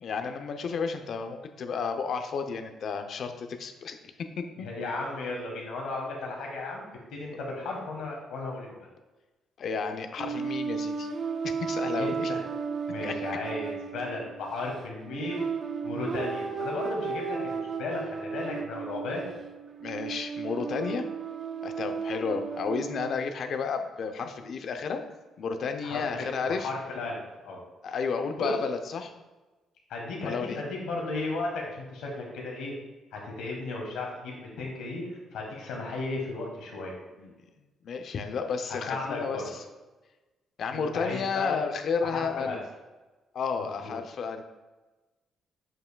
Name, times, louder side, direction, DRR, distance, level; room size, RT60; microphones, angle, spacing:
voice 1, 0.0-4.7 9.6-11.1 11.6-12.3 13.0-13.2 19.8-21.0 21.6-25.0 25.4-26.7 27.8-29.1 30.2-30.6 37.2-37.3 37.8-39.4 40.6-42.6 43.3-44.4, left 5 dB, 60° left, 7 dB, 0.6 m, -32 dB
voice 2, 4.6-6.8 7.1-8.7 11.9-12.4 12.9-15.4 15.8-19.3 25.8-27.6 28.4-28.5 29.9-32.7 33.1-35.0 35.3-36.9 38.7-39.5 40.7-41.6 42.0-42.6 43.8-43.9, left 2 dB, 90° left, -1 dB, 1.3 m, -35 dB
sound 1, 10.2-23.1, right 5 dB, 50° right, 0.4 m, -34 dB
7.5 x 5.6 x 2.2 m, 1.2 s
cardioid pair, 90°, 0 cm